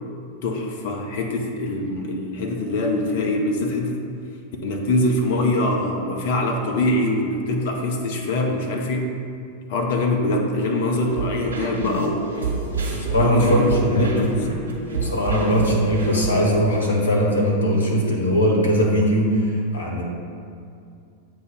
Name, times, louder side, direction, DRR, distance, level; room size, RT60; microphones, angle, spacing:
voice 1, 0.4-4.0 4.6-9.1 9.7-12.3 13.2-14.4, left 1 dB, 50° left, 2 dB, 0.7 m, -23 dB
sound 1, 11.0-16.3, right 3 dB, 75° right, 1.3 m, -28 dB
voice 2, 12.9-14.1 14.9-20.0, equal, 70° left, -2 dB, 1.3 m, -20 dB
7.9 x 2.8 x 5.2 m, 2.4 s
figure-of-eight pair, 90°, 0 cm